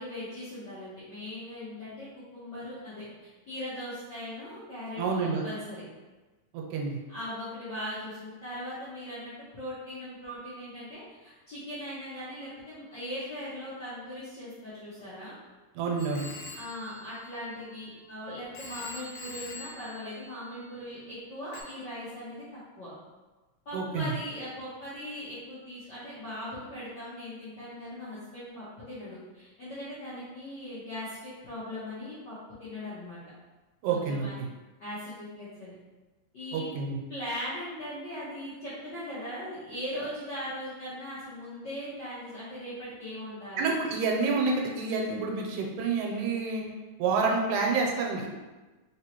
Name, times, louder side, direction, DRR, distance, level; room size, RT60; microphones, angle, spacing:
voice 1, 0.0-2.1 2.3-5.8 7.1-15.4 16.5-22.9 23.6-33.2 33.9-34.4 34.8-35.7 36.3-36.7 37.1-43.7, left 1 dB, 65° left, -11 dB, 1.0 m, -39 dB
voice 2, 5.0-5.4 6.5-7.0 15.8-16.3 23.7-24.1 33.8-34.3 36.5-37.0 43.6-46.6 47.0-48.3, right 4 dB, 85° right, 0 dB, 2.0 m, -28 dB
Telephone, 16.0-18.1 18.5-20.9 21.5-21.6, left 3 dB, 90° left, 2.0 m, -45 dB
4.0 x 3.6 x 2.9 m, 1.2 s
omnidirectional pair, 3.3 m